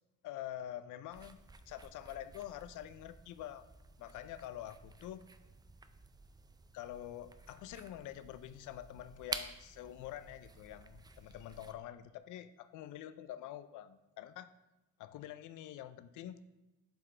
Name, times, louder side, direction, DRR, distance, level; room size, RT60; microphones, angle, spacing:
voice 1, 0.2-1.4 1.7-3.7 4.0-5.2 6.7-14.5 15.0-16.4, left 12 dB, 80° left, 13 dB, 0.4 m, -46 dB
sound 1, 1.1-11.7, right 3 dB, 15° right, 0.4 m, -50 dB
7.7 x 4.0 x 3.2 m, 1.0 s
cardioid pair, 90°, 30 cm